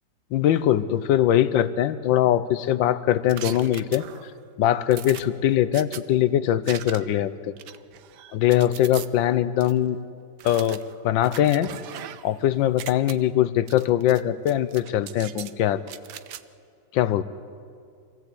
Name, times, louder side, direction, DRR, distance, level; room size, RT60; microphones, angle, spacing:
voice 1, 0.3-4.0 4.6-7.3 8.3-10.0 10.4-11.7 12.2-15.8 16.9-17.2, left 12 dB, 80° left, 14 dB, 1.5 m, -22 dB
sound 1, 3.3-4.4 4.9-6.0 6.6-7.2 7.6-9.1 9.6-9.7 10.4-12.4 12.7-13.1 13.7-14.2 14.5-15.5 15.9-16.4, right 11 dB, 70° right, 1.2 m, -40 dB
26.0 x 16.5 x 8.4 m, 2.3 s
omnidirectional pair, 2.1 m